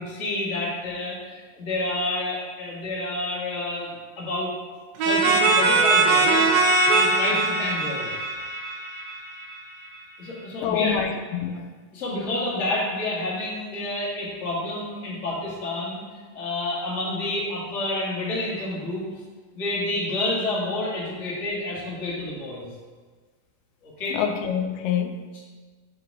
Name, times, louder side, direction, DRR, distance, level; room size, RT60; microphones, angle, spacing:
voice 1, 0.0-4.5 5.0-6.4 6.9-8.1 10.2-11.0 11.9-16.0 16.3-19.0 19.5-22.7 23.8-24.2 25.3-25.4, left 2 dB, 40° left, -6 dB, 1.1 m, -29 dB
sound 1, 5.0-9.6, right 3 dB, 85° right, 2.5 m, -21 dB
voice 2, 10.6-11.7 24.1-25.3, left 8 dB, 80° left, 7 dB, 2.1 m, -26 dB
5.7 x 5.0 x 4.7 m, 1.4 s
omnidirectional pair, 4.0 m